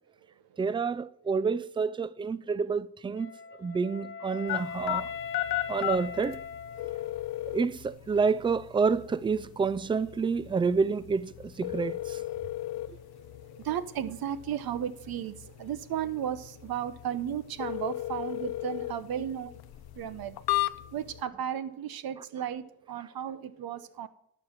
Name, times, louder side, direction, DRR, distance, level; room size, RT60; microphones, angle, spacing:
voice 1, 0.6-3.3 3.6-5.1 5.7-6.4 7.5-12.2, right 5 dB, 15° right, 0.4 m, -28 dB
Wind instrument woodwind instrument, 3.2-7.3, left 6 dB, 35° left, 0.9 m, -40 dB
sound 1, 4.5-21.2, left 16 dB, 80° left, 0.6 m, -36 dB
voice 2, 5.4-5.8 6.8-7.6 12.3-19.6 19.9-24.1, right 9 dB, 70° right, 0.9 m, -36 dB
11.5 x 4.6 x 7.2 m
cardioid pair, 70°, 37 cm